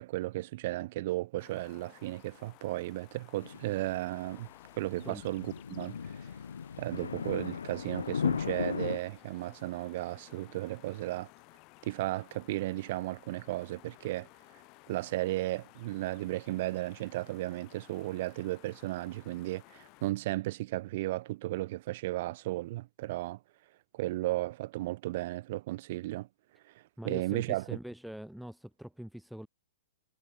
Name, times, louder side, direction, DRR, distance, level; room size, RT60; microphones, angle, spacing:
voice 1, 0.0-4.5 4.8-6.2 6.8-11.3 11.8-14.3 14.9-23.4 23.9-26.3 26.7-26.8 27.0-27.8, right 17 dB, 55° right, 2.2 m, -35 dB
sound 1, 1.4-20.1, left 27 dB, 40° left, 5.9 m, -57 dB
sound 2, 3.4-9.0, left 6 dB, 90° left, 2.9 m, -36 dB
voice 2, 27.0-29.5, equal, ahead, 2.6 m, -43 dB
hypercardioid pair, 130°, 0 cm